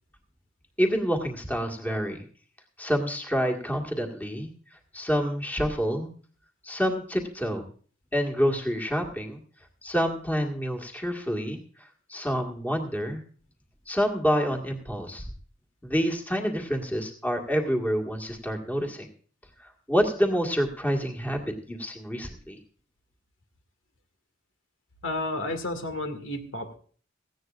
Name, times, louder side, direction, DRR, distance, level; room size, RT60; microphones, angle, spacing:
voice 1, 0.8-2.2 2.8-4.5 4.9-6.1 6.6-7.6 8.1-9.4 9.8-11.6 12.1-13.2 13.9-15.3 15.8-19.1 19.6-22.6, equal, 10° left, 1 dB, 1.8 m, -27 dB
voice 2, 25.0-26.8, left 2 dB, 75° left, 6 dB, 2.1 m, -32 dB
17.5 x 15.5 x 2.5 m, 0.43 s
head